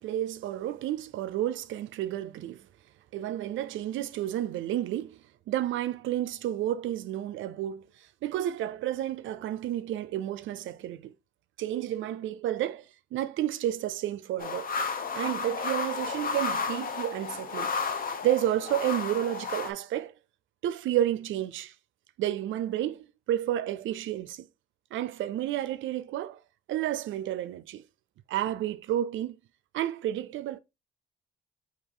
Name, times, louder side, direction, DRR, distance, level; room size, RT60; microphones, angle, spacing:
voice 1, 0.0-2.7 3.1-7.9 8.2-11.1 11.6-12.9 13.1-14.7 15.1-17.7 18.2-20.1 20.6-21.7 22.2-24.5 24.9-26.4 26.7-27.8 28.3-29.4 29.7-30.6, right 12 dB, 75° right, 0.5 m, -31 dB
sound 1, 14.4-19.7, left 5 dB, 45° left, 0.8 m, -32 dB
4.7 x 2.8 x 3.7 m
cardioid pair, 90°, 20 cm